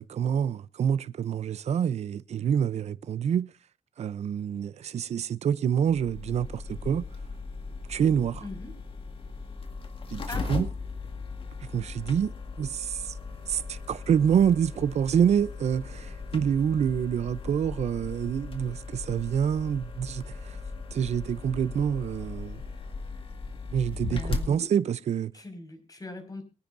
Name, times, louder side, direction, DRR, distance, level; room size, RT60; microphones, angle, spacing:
voice 1, 0.0-3.5 4.0-7.0 7.9-8.4 10.1-10.7 11.6-13.2 13.5-20.6 20.9-22.6 23.7-25.3, right 8 dB, 65° right, 0.7 m, -27 dB
sound 1, 5.9-24.5, left 4 dB, 50° left, 1.9 m, -38 dB
voice 2, 8.4-8.7 10.3-10.5 24.0-24.7 25.3-26.4, left 2 dB, 30° left, 5.4 m, -40 dB
23.0 x 10.0 x 2.6 m
cardioid pair, 70°, 12 cm